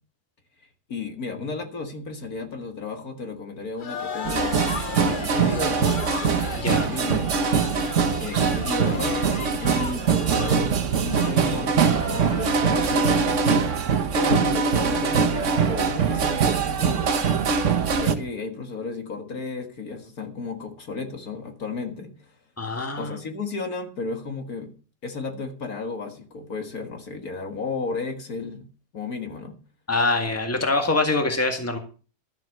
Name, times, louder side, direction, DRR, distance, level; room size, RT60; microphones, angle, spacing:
voice 1, 0.9-4.6 4.9-6.1 6.7-7.4 8.2-9.3 9.6-10.7 11.0-13.5 13.8-17.5 17.9-22.4 23.0-24.7 25.0-28.7 28.9-29.6, left 4 dB, 60° left, 6 dB, 2.0 m, -33 dB
sound 1, 3.8-12.6, left 5 dB, 40° left, 0.8 m, -36 dB
sound 2, 4.2-18.1, right 6 dB, 50° right, 1.3 m, -22 dB
voice 2, 6.6-6.9 22.6-23.2 29.9-31.8, left 2 dB, 10° left, 5 dB, 1.8 m, -24 dB
13.0 x 7.6 x 6.5 m, 0.38 s
omnidirectional pair, 1.8 m